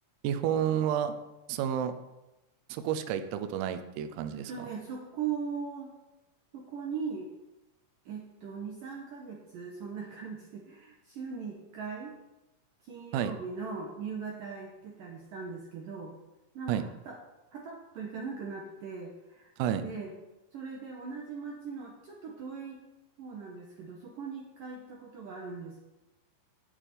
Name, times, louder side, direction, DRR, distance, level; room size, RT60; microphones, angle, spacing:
voice 1, 0.2-1.2 1.5-1.9 2.7-4.5 13.1-13.3 16.7-16.8 19.6-19.8, right 9 dB, 90° right, 9 dB, 3.5 m, -30 dB
voice 2, 4.3-5.9 6.5-7.3 8.1-12.1 12.8-16.1 16.5-17.2 17.5-19.5 19.8-20.1 20.5-22.8 23.2-25.8, right 5 dB, 75° right, 0 dB, 2.0 m, -39 dB
9.0 x 8.8 x 9.1 m, 1.0 s
omnidirectional pair, 5.9 m